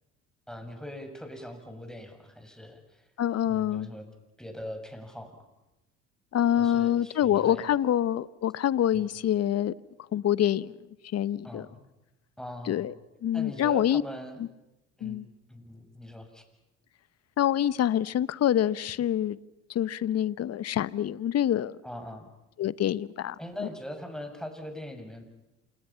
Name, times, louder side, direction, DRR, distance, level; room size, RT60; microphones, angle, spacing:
voice 1, 0.5-3.1 3.4-4.1 4.4-5.3 6.6-8.0 8.9-9.1 11.4-11.8 12.4-12.9 13.3-14.4 15.0-16.4 21.8-22.3 23.4-25.2, left 1 dB, ahead, 6.8 m, -41 dB
voice 2, 3.2-3.9 6.3-9.7 10.1-10.7 11.1-11.7 12.7-12.9 13.2-14.0 15.0-15.2 17.4-19.4 19.7-21.8 22.6-23.7, left 11 dB, 45° left, 1.0 m, -26 dB
29.0 x 28.5 x 5.8 m
hypercardioid pair, 60°, 36 cm